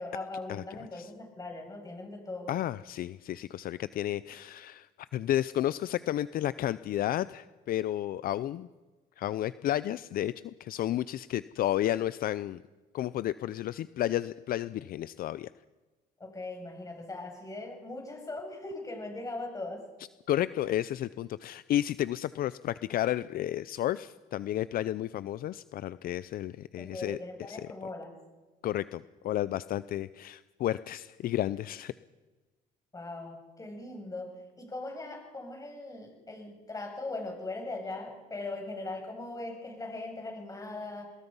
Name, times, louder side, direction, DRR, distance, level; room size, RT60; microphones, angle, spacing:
voice 1, 0.0-2.5 16.2-19.8 26.8-28.1 32.9-41.1, left 2 dB, 20° left, 2 dB, 7.8 m, -40 dB
voice 2, 2.5-8.7 9.2-12.6 12.9-15.5 20.3-27.2 27.5-27.7 28.6-31.9, left 12 dB, 60° left, 16 dB, 0.6 m, -32 dB
26.5 x 20.5 x 5.6 m, 1.2 s
cardioid pair, 110°, 17 cm